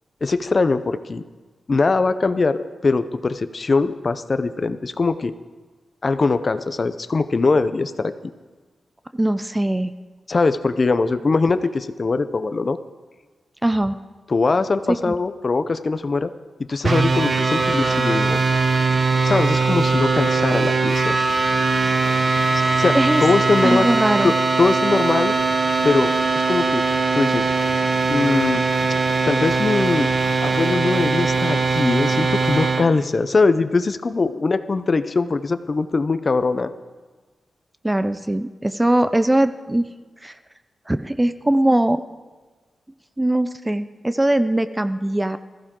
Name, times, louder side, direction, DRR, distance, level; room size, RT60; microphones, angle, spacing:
voice 1, 0.2-1.2 1.7-5.3 6.0-8.3 10.3-12.8 14.3-16.3 16.7-18.4 19.2-21.1 22.8-23.9 24.2-24.3 24.6-25.4 25.8-26.8 27.1-27.5 28.1-28.6 29.3-30.1 30.4-36.7, left 3 dB, 40° left, 12 dB, 0.6 m, -21 dB
voice 2, 9.2-9.9 13.6-14.0 14.9-15.1 22.9-23.2 23.6-24.3 37.8-39.9 40.2-40.3 40.9-42.0 43.2-45.4, right 1 dB, 10° right, 11 dB, 0.5 m, -20 dB
sound 1, 16.8-32.9, right 4 dB, 40° right, 0.8 m, -20 dB
20.5 x 14.5 x 3.7 m, 1.3 s
wide cardioid pair, 120°, 0 cm